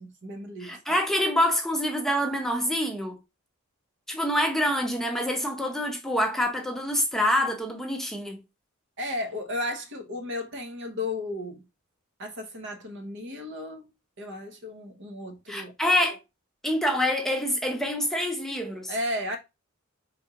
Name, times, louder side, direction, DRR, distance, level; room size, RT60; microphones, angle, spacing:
voice 1, 0.0-0.7 9.0-11.6 12.2-13.9 14.2-15.7 18.9-19.4, left 1 dB, 60° right, 1.0 m, -34 dB
voice 2, 0.6-3.2 4.1-8.4 15.5-16.2 16.6-18.9, equal, ahead, 0.7 m, -26 dB
4.8 x 3.4 x 2.8 m
head